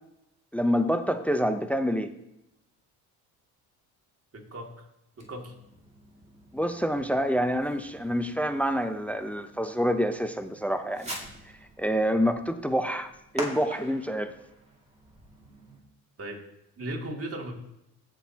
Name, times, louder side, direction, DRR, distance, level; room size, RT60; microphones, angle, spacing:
voice 1, 0.5-2.1 6.5-11.1 11.8-14.3, equal, 5° left, 9 dB, 0.6 m, -27 dB
voice 2, 4.3-4.9 5.2-5.5 16.2-16.4 16.8-17.5, right 1 dB, 35° right, 0 dB, 2.5 m, -37 dB
Fireworks, 5.1-15.8, right 1 dB, 15° right, 2.2 m, -45 dB
15.0 x 6.2 x 2.9 m, 0.84 s
supercardioid pair, 75°, 43 cm